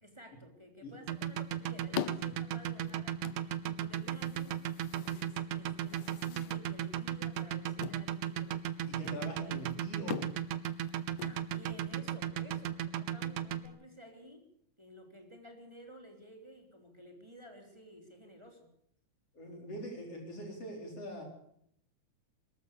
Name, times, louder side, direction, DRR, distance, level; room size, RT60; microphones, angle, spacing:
voice 1, 0.0-9.7 11.2-14.5 14.8-18.7, equal, 10° right, 4 dB, 3.5 m, -54 dB
sound 1, 0.9-12.0, left 12 dB, 85° left, 2.5 m, -46 dB
sound 2, 1.1-13.7, right 11 dB, 85° right, 2.5 m, -35 dB
voice 2, 8.9-10.3 19.3-21.2, equal, 50° left, 2 dB, 5.3 m, -43 dB
23.0 x 14.0 x 8.5 m, 0.71 s
omnidirectional pair, 3.5 m